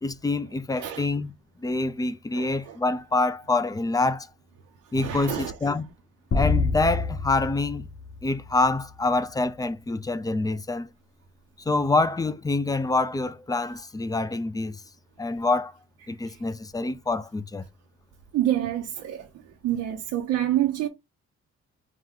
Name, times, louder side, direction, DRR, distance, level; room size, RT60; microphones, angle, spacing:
voice 1, 0.0-1.4 1.6-4.3 4.9-5.8 6.3-7.9 8.2-10.9 11.7-14.8 15.2-15.7 16.1-17.6, left 3 dB, 10° left, 0.4 m, -26 dB
voice 2, 2.3-2.7 5.0-5.5 16.3-16.4 18.3-19.3 19.6-20.9, right 12 dB, 85° right, 0.8 m, -27 dB
sound 1, 6.3-8.9, left 4 dB, 40° left, 1.3 m, -27 dB
4.7 x 2.2 x 3.7 m
cardioid pair, 90°, 30 cm